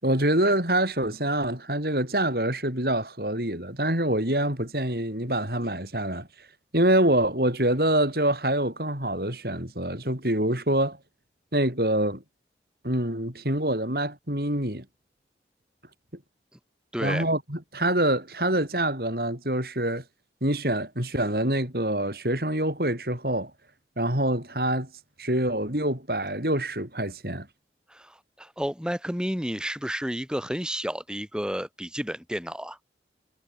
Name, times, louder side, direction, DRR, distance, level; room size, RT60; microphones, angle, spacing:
voice 1, 0.0-6.3 6.7-11.0 11.5-12.2 12.8-14.9 17.0-20.0 20.4-23.5 24.0-24.9 25.2-27.5, right 1 dB, 55° right, 6.9 m, -25 dB
voice 2, 16.9-17.3 27.9-32.8, equal, 5° right, 7.8 m, -31 dB
head